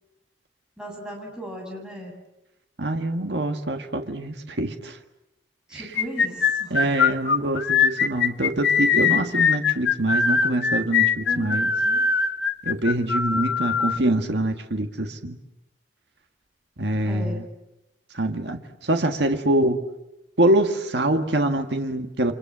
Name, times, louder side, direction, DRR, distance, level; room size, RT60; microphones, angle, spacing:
voice 1, 0.8-2.2 5.7-6.8 11.2-12.0 17.0-17.4, equal, 5° right, 0 dB, 7.7 m, -37 dB
voice 2, 2.8-5.0 5.7-5.9 6.7-11.7 12.6-15.4 16.8-17.4 18.1-19.8 20.4-22.3, right 1 dB, 70° right, 6 dB, 1.8 m, -24 dB
sound 1, 6.0-14.0, left 5 dB, 75° left, 1.3 m, -21 dB
30.0 x 25.5 x 7.5 m, 0.90 s
head